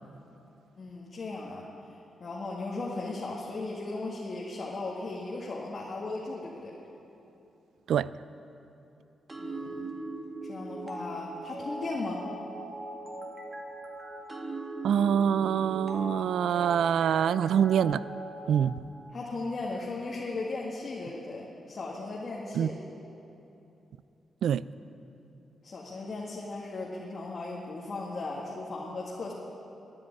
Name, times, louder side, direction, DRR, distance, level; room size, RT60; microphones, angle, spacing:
voice 1, 0.8-1.7 2.2-6.7 9.4-9.9 10.4-12.2 19.1-22.8 25.6-29.3, left 3 dB, 45° left, -4 dB, 1.9 m, -37 dB
sound 1, 9.3-18.7, right 2 dB, 25° right, 2.0 m, -40 dB
voice 2, 14.8-18.0 18.5-18.8 22.5-22.7 24.4-24.6, right 8 dB, 90° right, 18 dB, 0.3 m, -25 dB
13.0 x 10.0 x 9.9 m, 2.9 s
wide cardioid pair, 125°, 0 cm